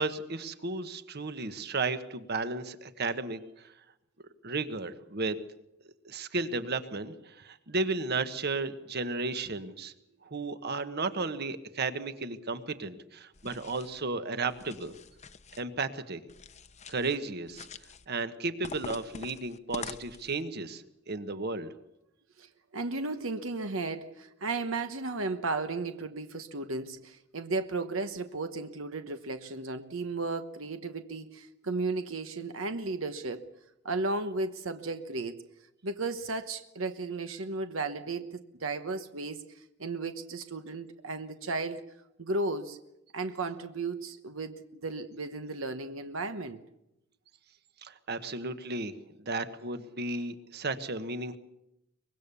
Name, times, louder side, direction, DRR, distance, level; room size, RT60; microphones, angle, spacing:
voice 1, 0.0-3.4 4.4-5.4 6.0-9.9 10.3-14.9 15.6-16.2 16.9-17.7 18.1-21.7 47.8-48.9 49.2-51.4, right 3 dB, 55° right, 10 dB, 1.4 m, -34 dB
sound 1, 13.3-14.0 14.5-15.6 16.3-17.2 17.5-18.1 18.6-20.4, left 4 dB, 35° left, 0.9 m, -45 dB
voice 2, 22.4-33.5 33.8-35.4 35.8-41.9 42.2-42.8 43.1-46.6, right 3 dB, 80° right, 8 dB, 1.1 m, -34 dB
24.0 x 21.0 x 7.0 m, 0.85 s
head